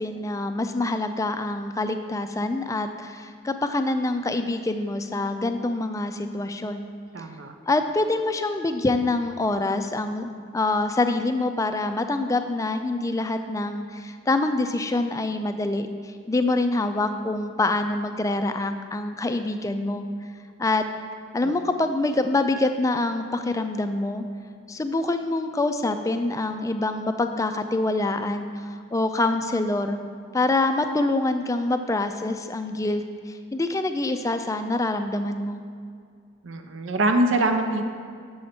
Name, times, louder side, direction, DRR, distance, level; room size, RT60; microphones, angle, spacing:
voice 1, 0.0-6.9 7.7-20.1 20.6-20.8 21.3-24.2 24.7-30.0 30.3-35.6, left 2 dB, 15° left, 8 dB, 0.3 m, -25 dB
voice 2, 7.1-7.5 36.4-37.9, right 1 dB, 70° right, 6 dB, 0.6 m, -23 dB
8.0 x 6.3 x 4.3 m, 2.2 s
head